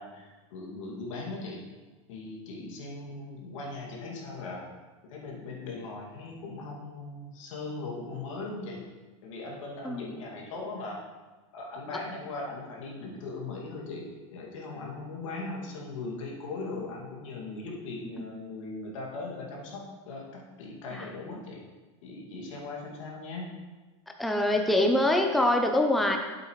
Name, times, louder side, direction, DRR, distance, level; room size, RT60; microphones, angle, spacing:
voice 1, 0.0-1.6 2.1-4.7 5.0-8.8 9.2-11.0 11.5-21.6 22.0-23.5, left 3 dB, 80° left, -2 dB, 2.2 m, -39 dB
voice 2, 24.2-26.2, left 1 dB, ahead, 3 dB, 0.7 m, -24 dB
8.6 x 7.7 x 3.1 m, 1.3 s
supercardioid pair, 115°, 16 cm